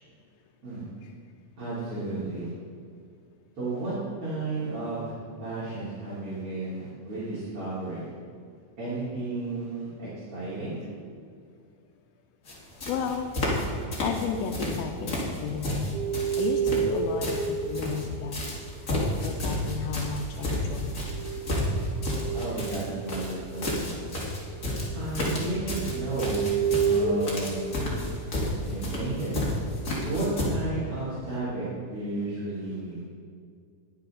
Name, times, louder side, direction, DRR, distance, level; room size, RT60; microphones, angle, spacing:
voice 1, 1.6-2.5 3.6-3.9 4.2-5.1 5.4-8.1 8.8-10.8 19.9-20.0 22.3-23.7 24.9-26.5 26.8-28.3 28.7-29.4 30.1-33.1, right 2 dB, 40° right, -11 dB, 3.8 m, -33 dB
sound 1, 12.5-12.6 12.8-13.7 13.9-14.8 15.1-18.0 18.3-30.4, left 1 dB, 30° left, 1.7 m, -31 dB
voice 2, 12.9-13.3 14.0-21.1, left 6 dB, 85° left, 2 dB, 2.5 m, -34 dB
sound 2, 15.9-18.7 20.8-28.5 29.8-30.3, right 5 dB, 75° right, 3.0 m, -31 dB
19.5 x 7.1 x 3.8 m, 2.2 s
omnidirectional pair, 4.3 m